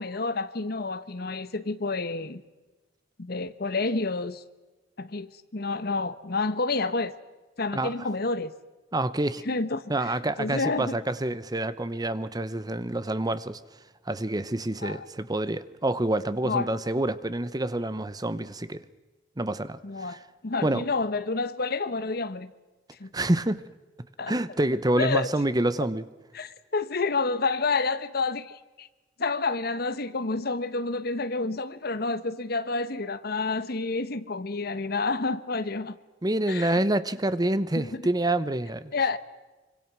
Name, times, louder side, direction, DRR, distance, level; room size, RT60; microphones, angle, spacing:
voice 1, 0.0-2.4 3.2-4.4 5.0-7.1 7.6-8.5 9.5-9.8 10.4-11.0 14.8-15.1 16.4-16.7 19.8-22.5 23.0-23.1 24.2-24.3 25.0-25.3 26.3-28.5 28.8-28.9 29.2-36.0 36.5-36.8 37.8-38.1 38.9-39.2, left 3 dB, 60° left, 1.1 m, -29 dB
voice 2, 7.7-8.1 8.9-9.4 9.9-13.6 14.1-18.8 19.4-20.2 20.6-20.8 23.1-23.6 24.3-26.0 36.2-38.9, right 1 dB, 20° right, 0.9 m, -27 dB
26.0 x 25.0 x 6.1 m
head